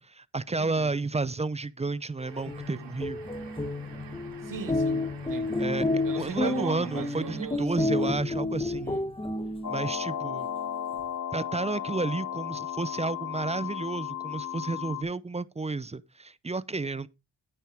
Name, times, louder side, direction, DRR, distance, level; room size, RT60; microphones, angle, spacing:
voice 1, 0.0-3.2 5.6-5.8 6.2-8.9 9.7-10.5 11.3-17.1, right 3 dB, 15° right, 0.5 m, -31 dB
voice 2, 0.6-0.9 4.4-5.6 6.0-8.2 8.7-9.0, right 6 dB, 45° right, 2.3 m, -39 dB
sound 1, 2.2-7.7, right 7 dB, 65° right, 3.1 m, -49 dB
sound 2, 2.3-9.9, left 2 dB, 10° left, 1.1 m, -30 dB
sound 3, 9.6-15.0, left 9 dB, 40° left, 3.0 m, -34 dB
9.6 x 9.1 x 3.5 m
cardioid pair, 75°, 46 cm